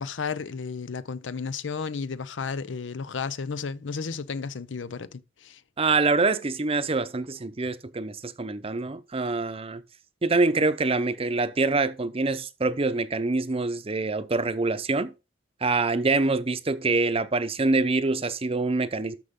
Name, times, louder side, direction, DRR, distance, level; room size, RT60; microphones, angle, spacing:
voice 1, 0.0-5.6, left 5 dB, 80° left, 0.6 m, -33 dB
voice 2, 5.8-9.8 10.2-15.1 15.6-19.2, right 3 dB, 30° right, 0.7 m, -25 dB
13.0 x 5.3 x 3.7 m
head